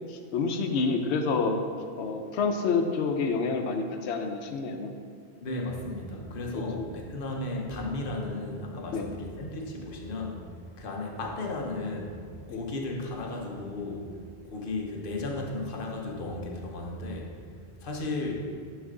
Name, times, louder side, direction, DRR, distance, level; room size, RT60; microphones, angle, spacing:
voice 1, 0.1-1.6 2.0-4.9 8.9-9.1 12.5-12.6, left 4 dB, 90° left, 5 dB, 0.9 m, -28 dB
voice 2, 5.4-10.4 10.8-12.2 12.5-14.1 14.4-17.3 17.8-18.4, left 2 dB, 60° left, 0 dB, 1.0 m, -34 dB
9.7 x 3.3 x 3.7 m, 2.2 s
omnidirectional pair, 1.1 m